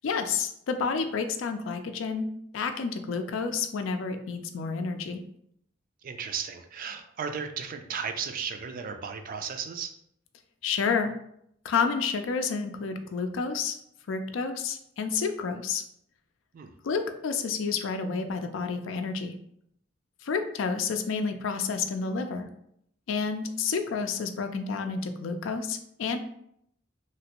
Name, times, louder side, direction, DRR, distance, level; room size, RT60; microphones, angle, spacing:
voice 1, 0.0-5.2 10.6-11.2 11.6-13.8 14.1-15.8 16.8-19.4 20.2-22.5 23.1-26.2, left 5 dB, 85° left, 7 dB, 0.4 m, -30 dB
voice 2, 6.0-10.0 16.5-16.7, right 6 dB, 45° right, 7 dB, 0.3 m, -35 dB
3.1 x 2.5 x 2.9 m, 0.71 s
head